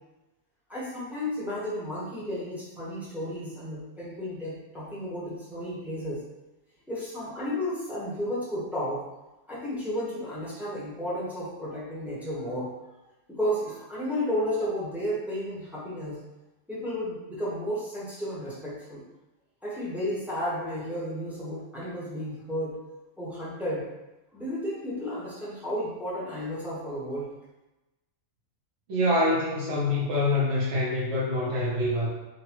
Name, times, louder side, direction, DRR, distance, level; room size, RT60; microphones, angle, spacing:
voice 1, 0.7-6.2 6.9-9.0 9.5-12.7 13.3-16.2 16.7-19.0 19.6-22.8 23.2-23.9 24.3-27.3, equal, ahead, -9 dB, 0.9 m, -32 dB
voice 2, 28.9-32.1, left 1 dB, 65° right, -6 dB, 1.1 m, -25 dB
3.9 x 2.2 x 2.9 m, 1.0 s
omnidirectional pair, 1.4 m